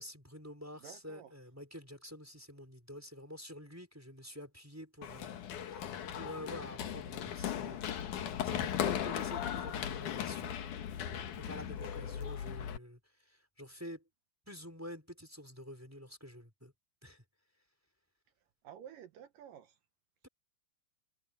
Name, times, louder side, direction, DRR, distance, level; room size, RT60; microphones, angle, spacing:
voice 1, 0.0-5.9 6.1-8.1 8.4-10.6 11.3-13.0 13.3-14.0 14.5-16.7 17.0-17.2, equal, 5° right, 3.9 m, -48 dB
voice 2, 0.8-1.3 18.6-19.7, right 9 dB, 70° right, 2.2 m, -51 dB
Run, 5.0-12.8, left 9 dB, 60° left, 2.4 m, -37 dB
omnidirectional pair, 4.9 m